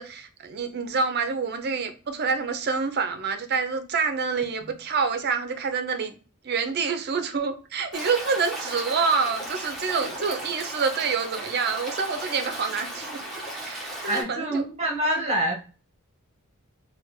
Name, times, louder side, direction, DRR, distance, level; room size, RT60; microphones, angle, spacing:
voice 1, 0.0-6.2 6.4-13.2 13.5-14.6, right 5 dB, 50° right, 0.5 m, -27 dB
Stream, 7.9-14.2, right 1 dB, ahead, 0.9 m, -36 dB
voice 2, 14.1-15.5, right 1 dB, 30° right, 1.0 m, -26 dB
3.3 x 2.2 x 2.9 m
head